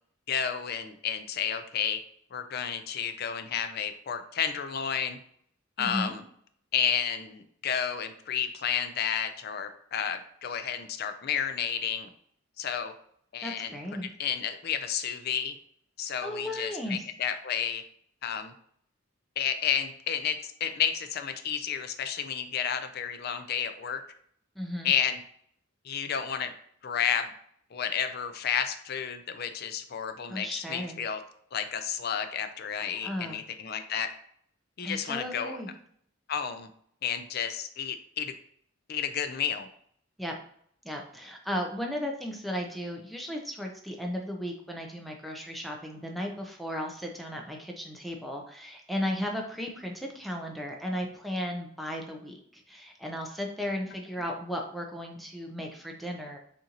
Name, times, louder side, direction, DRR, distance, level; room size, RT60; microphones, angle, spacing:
voice 1, 0.3-2.0 2.3-5.2 5.8-6.2 6.7-12.1 12.6-12.9 13.3-13.8 14.0-15.5 16.0-17.8 18.2-18.5 19.4-24.0 24.8-25.2 25.8-26.5 26.8-27.3 27.7-31.2 31.5-34.1 34.8-35.6 36.3-36.7 37.0-38.3 38.9-39.7, left 8 dB, 50° left, 8 dB, 0.4 m, -31 dB
voice 2, 5.8-6.1 13.4-14.1 16.2-17.0 24.6-24.9 30.3-31.0 33.0-33.4 34.8-35.7 40.2-40.4 40.8-56.4, equal, ahead, 0 dB, 0.6 m, -35 dB
6.5 x 2.6 x 2.9 m, 0.65 s
head